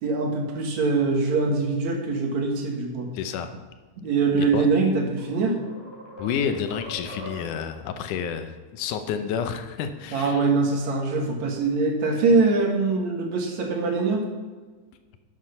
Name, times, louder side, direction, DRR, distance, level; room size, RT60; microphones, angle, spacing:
voice 1, 0.0-3.1 4.0-5.6 10.1-14.3, right 4 dB, 65° right, 2 dB, 2.7 m, -23 dB
voice 2, 3.1-3.5 4.4-4.7 6.2-10.5, left 7 dB, 80° left, 8 dB, 2.3 m, -30 dB
sound 1, 5.2-7.8, equal, 10° left, 3.3 m, -41 dB
12.0 x 7.6 x 5.6 m, 1.4 s
omnidirectional pair, 3.6 m